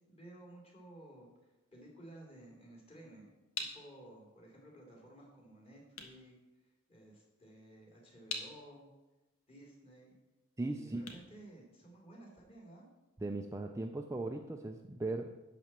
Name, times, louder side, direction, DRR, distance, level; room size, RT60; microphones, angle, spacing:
voice 1, 0.1-8.9 9.5-10.2 10.6-12.8, right 1 dB, 30° left, -2 dB, 2.9 m, -55 dB
sound 1, 3.4-12.3, left 4 dB, 90° left, 1.4 m, -48 dB
voice 2, 10.6-11.0 13.2-15.3, right 2 dB, 15° right, 4 dB, 0.4 m, -38 dB
11.0 x 4.3 x 7.4 m, 1.0 s
head